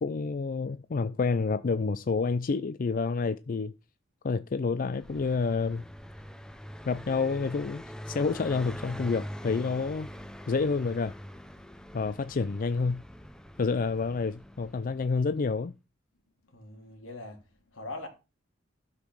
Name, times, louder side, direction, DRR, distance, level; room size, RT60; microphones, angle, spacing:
voice 1, 0.0-3.7 4.2-5.8 6.9-10.1 10.5-11.1 11.9-13.0 13.6-15.7, left 4 dB, 45° left, 0.4 m, -29 dB
Car passing by, 4.8-15.4, equal, 5° left, 0.7 m, -44 dB
voice 2, 16.4-18.1, left 2 dB, 85° left, 3.2 m, -42 dB
12.0 x 5.8 x 6.1 m
head